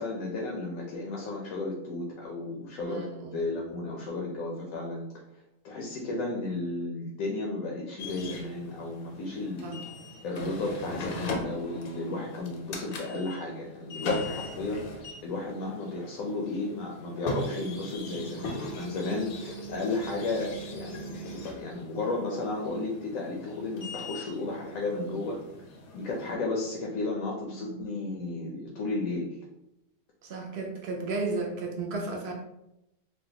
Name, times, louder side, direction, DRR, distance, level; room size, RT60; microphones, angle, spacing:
voice 1, 0.0-3.0 3.3-5.1 5.6-9.8 10.2-25.4 25.9-29.4, left 2 dB, 85° left, -1 dB, 1.0 m, -33 dB
voice 2, 2.8-3.5 9.6-9.8 27.5-27.8 30.2-32.3, right 3 dB, 65° right, 1 dB, 0.7 m, -34 dB
sound 1, 8.0-26.3, left 1 dB, 60° left, 0.6 m, -39 dB
3.5 x 2.1 x 2.8 m, 0.87 s
omnidirectional pair, 1.3 m